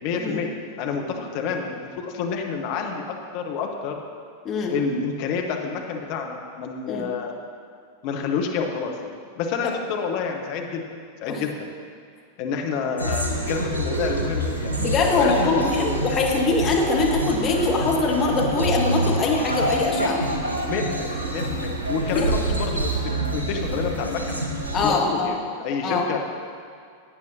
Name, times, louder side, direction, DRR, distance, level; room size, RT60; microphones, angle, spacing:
voice 1, 0.0-4.0 4.7-7.4 8.0-10.8 11.2-11.7 12.4-14.9 15.1-16.0 20.7-24.4 24.8-26.2, left 5 dB, 45° left, 2 dB, 1.2 m, -29 dB
sound 1, 13.0-24.9, right 1 dB, 75° right, 1.4 m, -26 dB
voice 2, 14.8-20.2 22.1-22.3 24.7-25.3 25.8-26.0, left 3 dB, 30° left, -2 dB, 1.8 m, -23 dB
17.0 x 9.0 x 2.8 m, 2.2 s
figure-of-eight pair, 90°, 0 cm